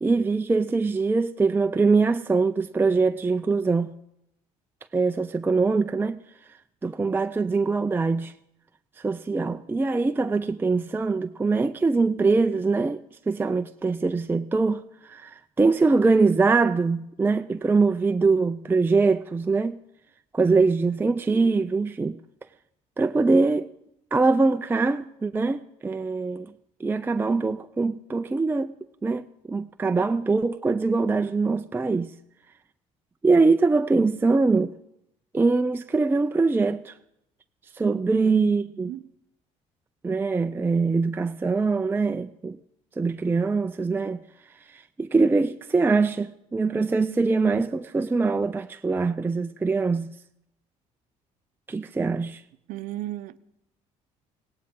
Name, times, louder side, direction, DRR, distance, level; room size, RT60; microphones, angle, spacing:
voice 1, 0.0-3.9 4.9-6.2 6.8-8.3 9.0-19.8 20.3-22.2 23.0-23.7 24.1-26.5 26.8-28.8 29.0-32.1 33.2-34.7 35.3-37.0 37.7-38.9 40.0-42.6 43.0-44.2 44.7-50.1 51.7-52.4, right 4 dB, 15° right, 0.4 m, -23 dB
voice 2, 38.7-39.1 52.7-53.4, right 15 dB, 75° right, 0.6 m, -35 dB
17.5 x 17.5 x 3.7 m
supercardioid pair, 90°, 14 cm